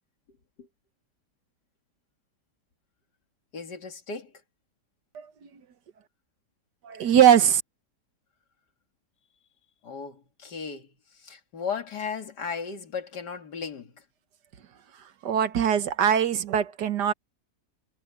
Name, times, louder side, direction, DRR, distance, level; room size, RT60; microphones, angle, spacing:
voice 1, 3.5-4.3 9.8-14.0, left 6 dB, 85° left, 2.6 m, -36 dB
voice 2, 5.2-5.5 6.8-7.6 15.2-17.1, right 9 dB, 85° right, 1.8 m, -21 dB
omnidirectional pair, 1.7 m